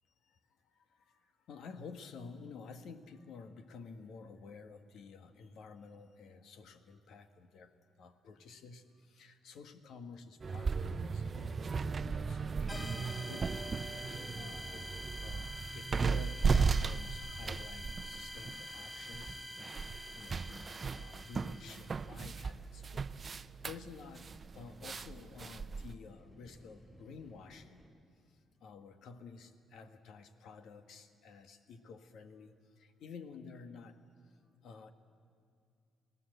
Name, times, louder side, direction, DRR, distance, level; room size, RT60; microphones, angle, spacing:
voice 1, 0.6-13.7 13.9-14.9 15.2-19.4 20.0-27.9 28.3-34.0 34.6-34.9, left 4 dB, 75° left, 8 dB, 1.6 m, -51 dB
sound 1, 10.4-25.9, right 5 dB, 40° right, 0.6 m, -36 dB
sound 2, 12.7-22.1, left 1 dB, 20° left, 1.4 m, -46 dB
sound 3, 22.7-27.9, equal, ahead, 5.6 m, -61 dB
28.0 x 18.0 x 8.0 m, 2.3 s
cardioid pair, 90°, 0 cm